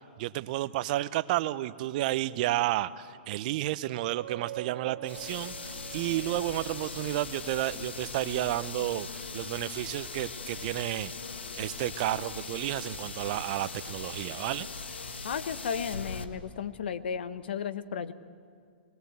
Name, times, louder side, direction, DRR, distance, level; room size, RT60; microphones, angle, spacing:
voice 1, 0.2-11.1 11.6-14.7, right 15 dB, 50° right, 16 dB, 0.8 m, -31 dB
sound 1, 3.9-7.4, right 12 dB, 85° right, 1.1 m, -45 dB
sound 2, 5.1-16.2, left 4 dB, 90° left, 1.7 m, -40 dB
voice 2, 15.2-18.1, left 7 dB, 70° left, 13 dB, 1.2 m, -34 dB
23.0 x 20.5 x 8.2 m, 2.2 s
hypercardioid pair, 120°, 6 cm